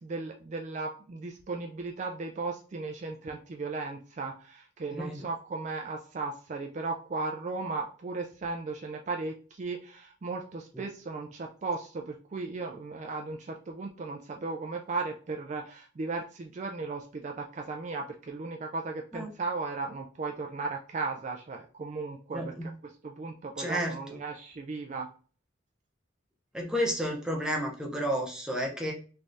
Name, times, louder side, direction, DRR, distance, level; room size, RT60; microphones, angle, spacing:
voice 1, 0.0-25.1, right 3 dB, 35° right, 2 dB, 0.3 m, -36 dB
voice 2, 4.9-5.3 19.1-19.3 22.3-22.7 23.6-23.9 26.5-28.9, equal, 5° right, -1 dB, 0.7 m, -31 dB
3.3 x 3.2 x 2.6 m, 0.39 s
head